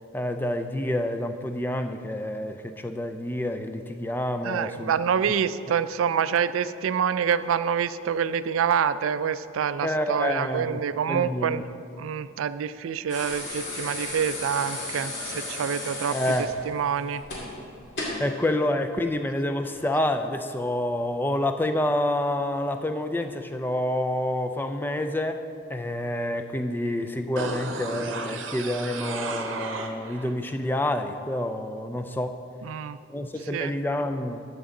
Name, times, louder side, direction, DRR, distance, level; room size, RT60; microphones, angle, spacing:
voice 1, 0.1-4.9 9.8-11.6 16.1-16.5 18.2-25.4 25.7-32.4 33.1-34.5, left 1 dB, 10° left, 7 dB, 0.4 m, -28 dB
voice 2, 4.4-11.6 12.0-17.2 32.6-33.0 33.5-33.7, right 7 dB, 90° right, 14 dB, 0.3 m, -26 dB
sound 1, 13.1-18.3 19.6-19.8, left 2 dB, 60° left, 2.3 m, -34 dB
sound 2, 27.4-30.3 30.7-30.8, right 3 dB, 75° right, 0.8 m, -34 dB
12.0 x 8.0 x 3.8 m, 2.5 s
head